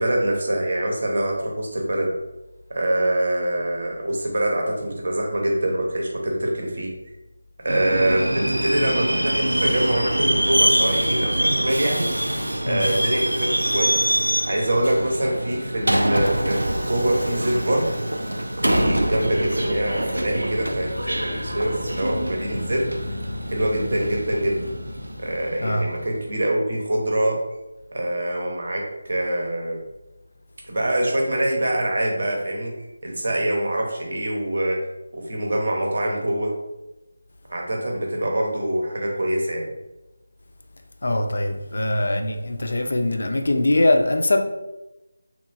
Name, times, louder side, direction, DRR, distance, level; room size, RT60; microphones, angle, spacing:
voice 1, 0.0-2.1 2.7-6.9 7.6-12.3 12.6-13.9 14.5-17.9 18.6-22.9 23.5-24.6 25.2-27.4 27.9-29.8 30.7-34.8 35.1-36.5 37.5-39.7, right 1 dB, 55° right, 0 dB, 0.7 m, -24 dB
Subway metro underground, 7.7-26.1, right 1 dB, 85° right, 0.3 m, -25 dB
voice 2, 41.0-44.4, left 1 dB, 60° left, 4 dB, 0.3 m, -22 dB
2.9 x 2.4 x 2.5 m, 0.98 s
figure-of-eight pair, 160°, 0 cm